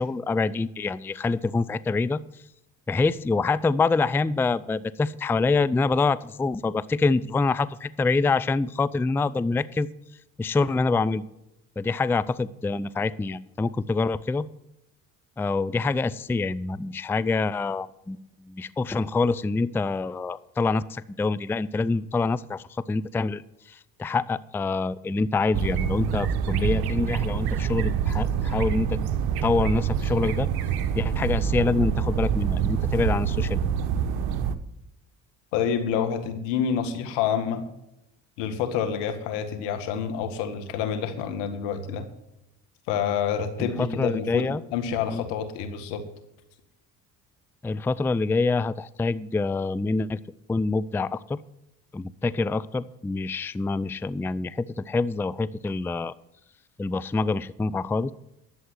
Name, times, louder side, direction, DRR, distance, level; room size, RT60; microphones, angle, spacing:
voice 1, 0.0-2.2 2.9-9.9 10.4-11.2 11.8-14.5 15.4-18.2 18.4-23.4 23.7-29.0 29.4-30.5 30.9-33.6 43.6-44.6 45.1-45.2 47.6-50.2 50.5-51.4 51.9-56.1 56.8-58.1, left 3 dB, 5° left, 18 dB, 0.4 m, -26 dB
sound 1, 25.5-34.6, right 8 dB, 70° right, 1.1 m, -26 dB
voice 2, 35.5-37.7 38.4-42.0 42.9-46.0, left 7 dB, 85° left, 8 dB, 1.8 m, -28 dB
11.0 x 7.9 x 7.8 m, 0.87 s
supercardioid pair, 70°, 40 cm